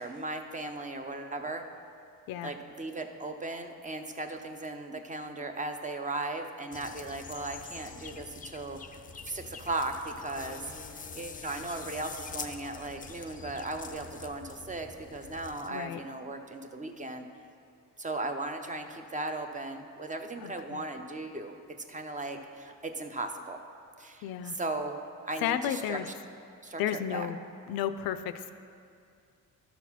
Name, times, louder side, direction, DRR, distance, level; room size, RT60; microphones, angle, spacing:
voice 1, 0.0-1.6 2.4-10.6 10.9-17.3 18.0-21.5 21.9-23.6 24.0-24.3 24.5-26.0 26.6-27.3, right 2 dB, 20° right, 5 dB, 0.6 m, -37 dB
sound 1, 6.7-15.7, left 5 dB, 25° left, 0.4 m, -45 dB
voice 2, 15.7-16.0 20.4-20.8 24.2-24.6 25.4-26.1 26.8-27.4 27.7-28.5, left 10 dB, 85° left, 11 dB, 0.5 m, -33 dB
12.0 x 4.2 x 5.8 m, 2.4 s
cardioid pair, 100°, 35 cm